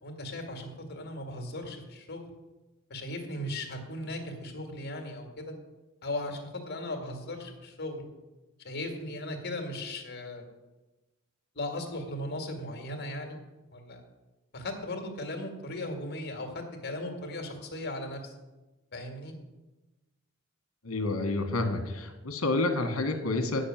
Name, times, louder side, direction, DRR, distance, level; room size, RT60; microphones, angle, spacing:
voice 1, 0.0-2.2 2.9-5.5 6.0-8.1 8.6-10.4 11.6-13.4 13.7-14.0 14.5-18.3 18.9-19.3, left 1 dB, 50° left, 4 dB, 1.9 m, -37 dB
voice 2, 20.8-23.6, left 2 dB, 80° left, 5 dB, 1.5 m, -29 dB
8.8 x 6.5 x 7.5 m, 1.1 s
head